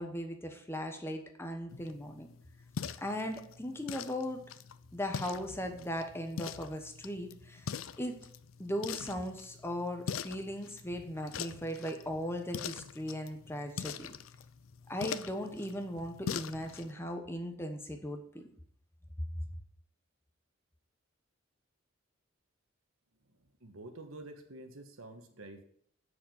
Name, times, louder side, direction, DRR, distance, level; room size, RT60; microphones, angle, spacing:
voice 1, 0.0-2.3 3.0-4.4 4.9-7.7 8.0-8.2 8.6-14.1 14.9-18.5, equal, 10° left, 5 dB, 1.1 m, -38 dB
sound 1, 1.7-16.9, left 7 dB, 75° left, 0.5 m, -43 dB
voice 2, 23.6-25.6, right 2 dB, 85° right, 6 dB, 1.5 m, -48 dB
7.5 x 6.7 x 7.1 m, 0.65 s
head